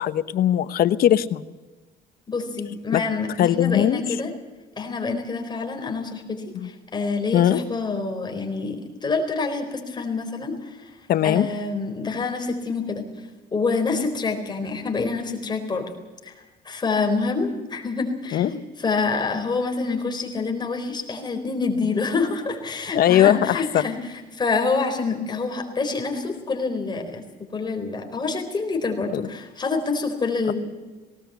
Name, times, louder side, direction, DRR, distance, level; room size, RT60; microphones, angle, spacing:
voice 1, 0.0-1.4 2.9-3.0 3.4-4.1 6.5-6.7 7.3-7.6 11.1-11.5 18.3-18.5 22.9-23.8 29.1-29.2, left 11 dB, 60° left, 14 dB, 1.0 m, -19 dB
voice 2, 2.3-4.3 4.8-10.9 11.2-13.0 13.5-15.9 16.2-16.3 16.6-27.2 27.5-30.5, left 4 dB, 25° left, 3 dB, 4.3 m, -27 dB
19.0 x 18.5 x 8.1 m, 1.3 s
cardioid pair, 110°, 17 cm